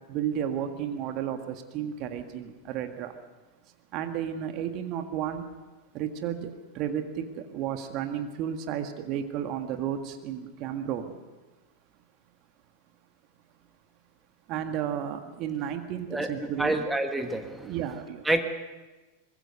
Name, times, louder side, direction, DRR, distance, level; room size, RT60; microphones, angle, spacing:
voice 1, 0.0-3.1 3.9-5.4 5.9-11.2 14.5-16.7 17.6-18.2, right 9 dB, 40° right, 7 dB, 1.7 m, -33 dB
voice 2, 16.1-17.7 18.2-18.4, right 1 dB, 5° right, 6 dB, 1.7 m, -28 dB
24.0 x 21.0 x 6.6 m, 1.2 s
figure-of-eight pair, 90°, 0 cm